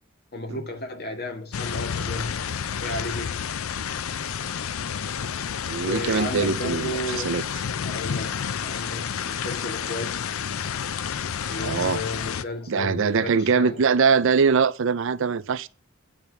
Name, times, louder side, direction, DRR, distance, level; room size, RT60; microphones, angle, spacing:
voice 1, 0.3-2.3 2.8-3.4 5.8-7.5 7.8-10.3 11.5-13.8, left 1 dB, 50° left, 1.9 m, -33 dB
sound 1, 1.5-12.4, left 7 dB, 80° left, 0.5 m, -30 dB
voice 2, 5.7-7.4 11.6-12.0 12.7-15.7, right 5 dB, 65° right, 0.5 m, -22 dB
9.0 x 4.6 x 6.9 m
head